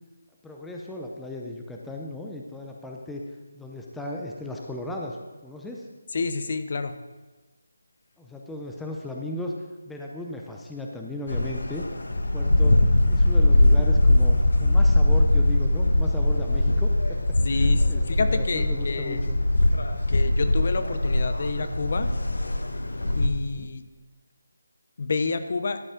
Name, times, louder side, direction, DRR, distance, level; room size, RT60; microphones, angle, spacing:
voice 1, 0.4-3.2 3.5-5.2 5.4-5.8 8.2-9.5 9.8-11.8 12.1-12.8 13.1-17.2 17.5-19.4 23.5-23.7, left 1 dB, 5° left, -1 dB, 0.5 m, -36 dB
voice 2, 6.1-6.9 17.4-19.3 20.1-22.1 23.1-23.8 25.0-25.8, left 4 dB, 50° left, 10 dB, 0.7 m, -29 dB
sound 1, 11.3-23.3, left 1 dB, 85° left, 1.1 m, -21 dB
12.0 x 5.3 x 5.0 m, 1.2 s
figure-of-eight pair, 165°, 0 cm